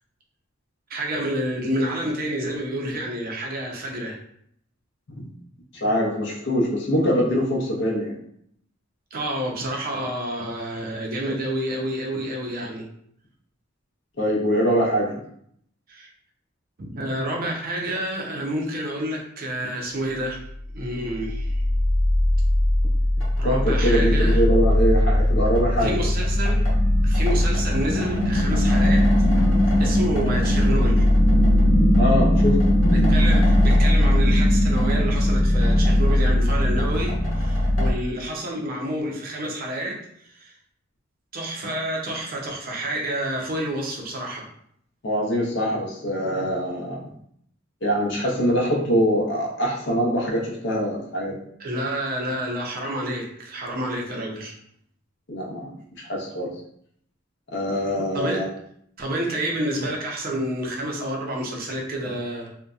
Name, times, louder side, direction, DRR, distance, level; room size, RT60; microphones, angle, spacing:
voice 1, 0.9-4.2 9.1-12.9 15.9-16.1 16.8-20.4 20.7-21.6 23.4-24.4 25.8-26.7 27.0-29.1 29.8-31.0 32.9-40.0 40.3-40.5 41.3-44.4 51.6-54.5 58.1-58.4 59.0-62.5, right 1 dB, 45° right, 0 dB, 0.5 m, -29 dB
voice 2, 5.7-8.2 14.2-15.1 23.4-26.0 32.0-32.6 45.0-47.0 47.8-51.4 55.3-55.7 56.0-56.5 57.5-58.5, equal, 60° left, -2 dB, 0.6 m, -23 dB
sound 1, 20.5-37.9, left 1 dB, 75° left, 1.0 m, -19 dB
2.6 x 2.1 x 2.3 m, 0.68 s
head